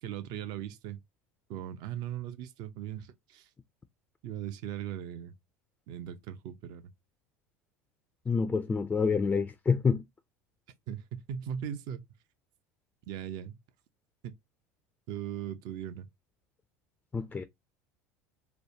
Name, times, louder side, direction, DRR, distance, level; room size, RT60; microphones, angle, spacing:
voice 1, 0.0-1.0 1.5-3.5 4.2-5.3 5.9-6.8 10.9-12.0 13.1-13.6 14.2-14.3 15.1-16.1, right 10 dB, 55° right, 0.6 m, -38 dB
voice 2, 8.3-10.0 17.1-17.4, left 5 dB, 15° left, 0.3 m, -27 dB
3.2 x 2.1 x 2.7 m
hypercardioid pair, 80°, 8 cm